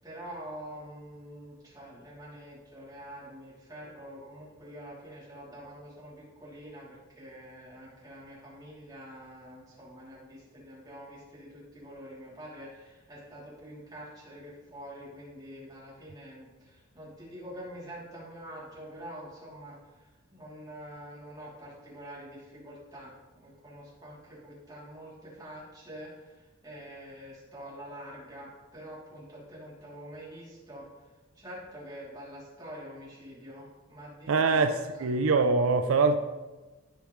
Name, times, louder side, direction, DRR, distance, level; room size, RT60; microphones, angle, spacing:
voice 1, 0.0-30.8 31.3-34.6 34.9-35.1, equal, 20° right, -7 dB, 3.0 m, -46 dB
voice 2, 34.3-36.2, right 4 dB, 80° right, 7 dB, 0.5 m, -24 dB
15.0 x 5.2 x 3.1 m, 1.2 s
head